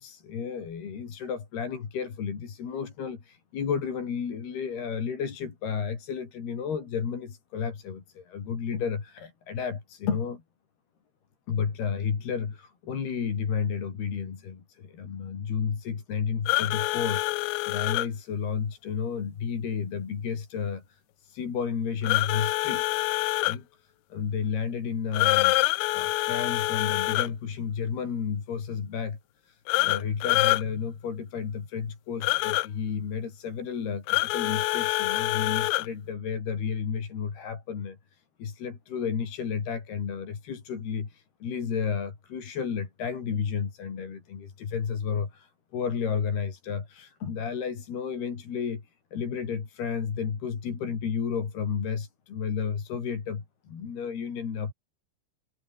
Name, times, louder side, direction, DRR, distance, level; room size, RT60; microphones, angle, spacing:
voice 1, 0.0-10.4 11.5-22.8 23.5-25.6 25.9-48.8 49.1-54.7, left 6 dB, 55° left, 5.8 m, -32 dB
sound 1, 16.5-18.1 22.0-23.6 25.1-27.3 29.7-30.6 32.2-32.7 34.1-35.9, left 22 dB, 85° left, 3.3 m, -26 dB
omnidirectional pair, 5.8 m